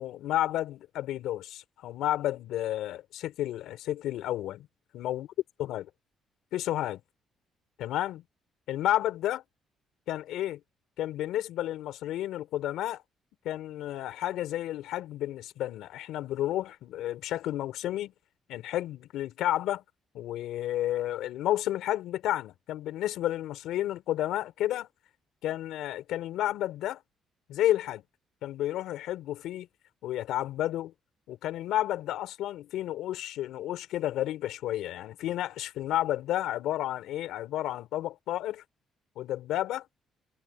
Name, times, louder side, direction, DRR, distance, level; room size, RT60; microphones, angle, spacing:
voice 1, 0.0-4.7 4.9-5.3 5.6-5.8 6.5-7.0 7.8-8.2 8.7-9.4 10.1-10.6 11.0-13.0 13.4-18.1 18.5-19.8 20.1-24.9 25.4-27.0 27.5-28.0 28.4-29.7 30.0-30.9 31.3-38.6 39.2-39.8, left 13 dB, 85° left, 4.6 m, -31 dB
cardioid pair, 105°, 0 cm